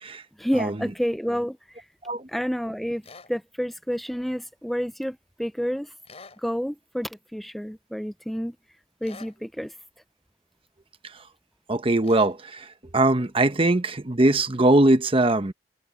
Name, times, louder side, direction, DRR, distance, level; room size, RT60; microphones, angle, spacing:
voice 1, 0.4-1.9 2.3-3.0 3.3-5.9 6.4-8.5 9.0-9.7, equal, ahead, 0.3 m, -29 dB
sound 1, 3.0-3.3 6.0-6.4 9.0-9.4 12.0-12.4, left 4 dB, 35° left, 4.1 m, -45 dB
voice 2, 11.7-12.7 12.9-15.5, right 2 dB, 30° right, 1.0 m, -21 dB
head